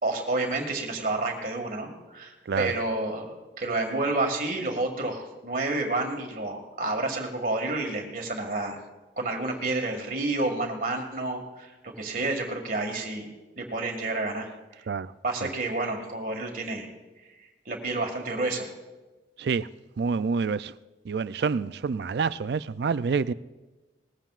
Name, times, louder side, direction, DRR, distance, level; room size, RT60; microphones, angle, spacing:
voice 1, 0.0-3.2 3.6-8.8 9.2-13.3 13.6-14.5 15.2-16.9 17.7-18.7, right 2 dB, 45° right, 2.0 m, -29 dB
voice 2, 20.0-20.7 21.1-23.3, right 5 dB, 65° right, 0.4 m, -27 dB
20.0 x 15.0 x 2.5 m
head